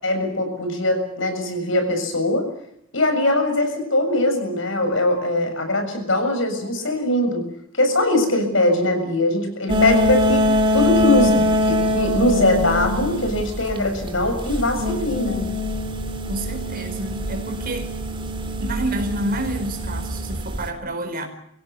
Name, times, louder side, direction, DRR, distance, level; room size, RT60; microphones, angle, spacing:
voice 1, 0.0-2.5 2.9-7.4 7.7-10.5 10.7-15.5, left 1 dB, 70° left, 6 dB, 7.1 m, -21 dB
sound 1, 9.7-20.7, left 1 dB, 25° right, 2.4 m, -23 dB
voice 2, 16.3-17.9 18.6-21.3, right 1 dB, 45° right, 5 dB, 4.5 m, -29 dB
26.0 x 16.5 x 8.3 m, 0.75 s
head